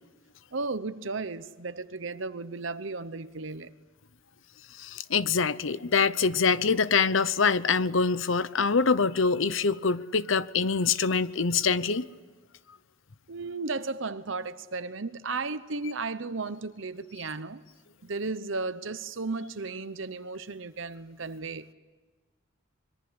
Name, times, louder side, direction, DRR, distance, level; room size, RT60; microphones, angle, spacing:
voice 1, 0.5-3.7 13.3-17.6 18.0-21.7, right 3 dB, 65° right, 0.9 m, -34 dB
voice 2, 4.8-12.1, left 5 dB, 70° left, 0.8 m, -25 dB
25.5 x 22.0 x 9.8 m
head